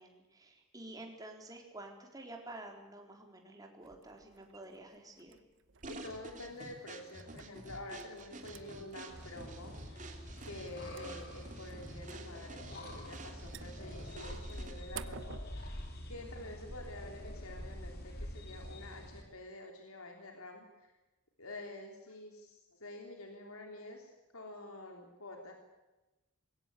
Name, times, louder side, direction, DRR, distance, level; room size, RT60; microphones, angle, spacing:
voice 1, 0.0-5.4 16.4-16.6, right 2 dB, 15° right, 2 dB, 4.1 m, -50 dB
sound 1, 3.8-15.4, right 6 dB, 60° right, 1.0 m, -55 dB
sound 2, 5.8-15.0, right 2 dB, 35° right, 2.9 m, -49 dB
voice 2, 5.9-10.1 10.4-15.8 16.1-20.9 21.4-25.5, left 2 dB, 85° left, 3 dB, 3.3 m, -48 dB
sound 3, 9.1-19.2, left 1 dB, 50° left, 3.7 m, -46 dB
22.0 x 17.5 x 8.3 m, 1.1 s
head